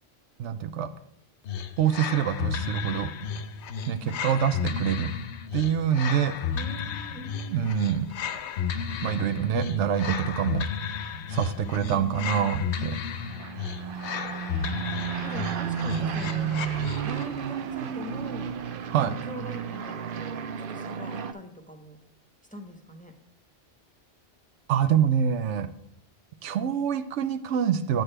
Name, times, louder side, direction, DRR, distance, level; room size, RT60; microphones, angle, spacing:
voice 1, 0.4-0.9 1.8-3.1 3.9-5.1 5.5-6.4 7.5-8.1 9.0-10.7 11.3-13.0 18.9-19.1 24.7-25.7 26.4-28.0, right 8 dB, 80° right, 11 dB, 0.9 m, -25 dB
sound 1, 1.4-17.4, left 7 dB, 75° left, 0.9 m, -33 dB
voice 2, 6.5-7.8 11.5-12.6 15.2-18.6 19.0-22.0 22.5-23.1, left 1 dB, 10° left, 4 dB, 0.7 m, -42 dB
sound 2, 13.1-21.3, right 8 dB, 60° right, 0.6 m, -32 dB
9.0 x 7.7 x 3.3 m, 0.71 s
omnidirectional pair, 1.2 m